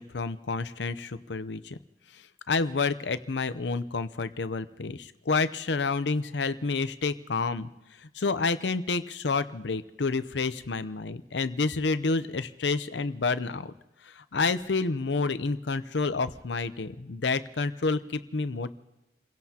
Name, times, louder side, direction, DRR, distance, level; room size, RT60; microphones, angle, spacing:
voice 1, 0.0-1.8 2.1-13.7 14.0-18.7, left 4 dB, 75° left, 12 dB, 0.7 m, -29 dB
29.5 x 16.5 x 2.9 m, 0.99 s
head